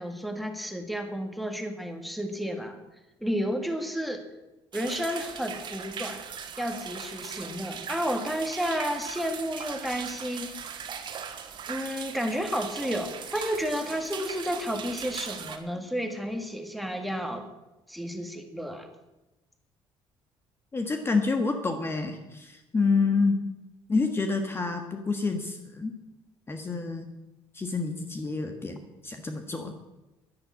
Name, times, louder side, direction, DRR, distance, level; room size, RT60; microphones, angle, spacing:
voice 1, 0.0-2.8 3.2-4.2 4.7-6.2 6.6-10.5 11.7-17.5 17.9-18.9, equal, ahead, 6 dB, 1.9 m, -31 dB
sound 1, 4.7-15.6, right 7 dB, 50° right, 1.8 m, -39 dB
voice 2, 20.7-23.4 23.9-25.9 26.5-27.1 27.5-29.7, left 4 dB, 25° left, 6 dB, 1.4 m, -28 dB
11.0 x 10.5 x 8.6 m, 1.0 s
cardioid pair, 105°, 10 cm